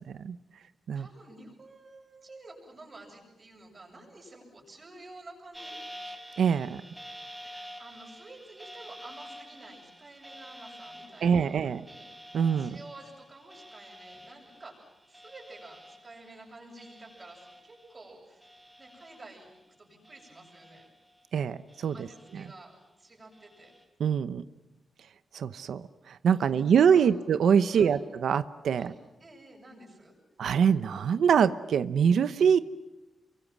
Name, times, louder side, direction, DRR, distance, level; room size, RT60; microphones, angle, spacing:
voice 1, 0.9-5.8 7.8-11.5 11.9-12.1 12.6-14.8 15.1-18.5 18.8-20.9 21.9-22.7 23.0-23.7 26.4-27.1 27.7-28.0 28.8-30.1, right 2 dB, 25° right, 1 dB, 7.8 m, -50 dB
sound 1, 5.5-18.1 18.4-19.6 20.0-21.3 21.7-22.7 23.3-23.8, equal, 5° right, 4.2 m, -49 dB
voice 2, 6.4-6.8 11.2-11.8 12.3-12.8 21.3-22.1 22.3-22.4 24.0-24.4 25.3-28.9 30.4-32.6, right 7 dB, 70° right, 13 dB, 0.9 m, -24 dB
29.5 x 24.0 x 7.5 m, 1.0 s
wide cardioid pair, 175°, 0 cm